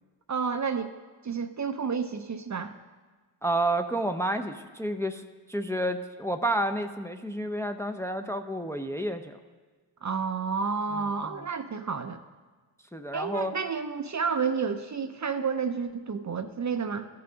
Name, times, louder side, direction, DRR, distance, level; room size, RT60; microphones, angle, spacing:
voice 1, 0.3-0.9 1.2-2.7 10.0-12.2 13.1-17.1, right 5 dB, 40° right, 9 dB, 0.5 m, -30 dB
voice 2, 3.4-5.2 5.5-9.4 10.9-11.4 12.9-13.5, right 1 dB, 5° left, 6 dB, 0.5 m, -30 dB
14.0 x 5.6 x 3.9 m, 1.4 s
cardioid pair, 40°, 47 cm